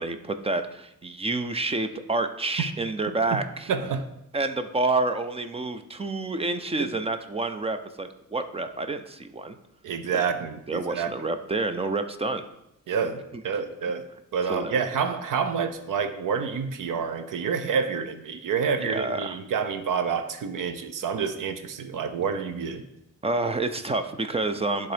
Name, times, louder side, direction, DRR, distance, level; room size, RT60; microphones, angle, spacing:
voice 1, 0.0-3.7 4.3-9.6 10.1-10.2 10.7-12.4 14.5-14.8 18.8-19.4 23.2-24.9, right 2 dB, 20° right, 9 dB, 0.4 m, -28 dB
voice 2, 3.7-4.1 6.8-6.9 9.8-11.1 12.9-14.0 14.3-22.8, right 6 dB, 80° right, 9 dB, 0.8 m, -28 dB
10.5 x 3.5 x 5.0 m, 0.84 s
wide cardioid pair, 155°, 32 cm